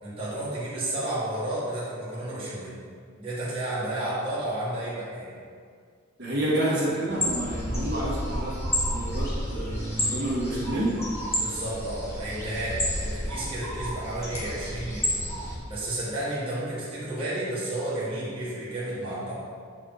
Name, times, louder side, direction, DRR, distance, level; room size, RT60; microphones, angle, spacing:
voice 1, 0.0-2.7 3.2-5.4 11.3-15.2 15.7-19.3, right 1 dB, 25° right, -10 dB, 1.8 m, -32 dB
voice 2, 6.2-10.9, right 1 dB, 55° right, -8 dB, 1.8 m, -29 dB
sound 1, 7.1-15.6, equal, 15° left, 1.4 m, -31 dB
7.8 x 4.5 x 4.0 m, 2.1 s
head